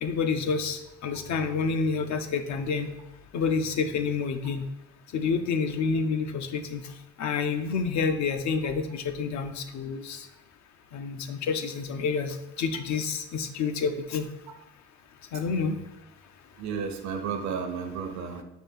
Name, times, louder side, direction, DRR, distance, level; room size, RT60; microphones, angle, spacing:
voice 1, 0.0-2.9 3.3-4.6 5.1-6.8 7.2-10.3 10.9-14.3 15.3-15.8, left 5 dB, 65° left, 8 dB, 0.6 m, -28 dB
voice 2, 16.6-18.4, right 6 dB, 65° right, 4 dB, 0.6 m, -32 dB
6.0 x 2.5 x 3.3 m, 0.95 s
cardioid pair, 90°, 30 cm